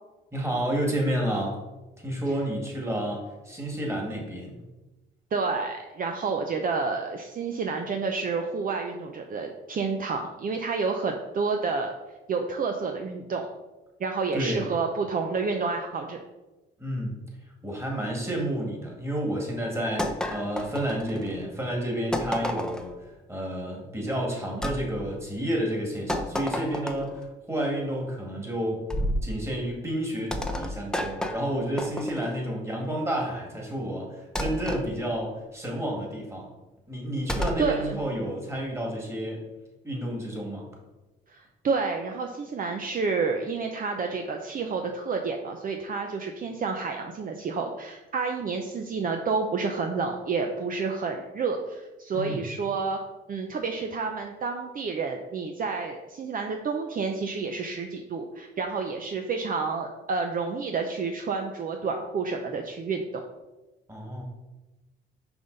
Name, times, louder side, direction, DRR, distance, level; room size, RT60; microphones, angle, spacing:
voice 1, 0.3-1.6 2.0-4.6 14.3-14.7 16.8-17.2 17.6-28.8 29.2-36.5 36.9-39.4 39.8-40.6 52.1-52.5 63.9-64.2, right 1 dB, 15° right, -1 dB, 2.1 m, -30 dB
voice 2, 5.3-11.9 12.3-13.5 14.0-16.2 37.6-38.0 41.3-53.0 53.3-63.2, right 4 dB, 45° right, 4 dB, 0.7 m, -29 dB
sound 1, 20.0-21.4 22.1-23.0 24.6-24.8 26.1-27.2 28.9-29.3 30.3-32.4 34.4-34.9 37.3-37.7, equal, 5° left, 0.7 m, -31 dB
5.8 x 5.2 x 4.0 m, 1.1 s
cardioid pair, 90°, 20 cm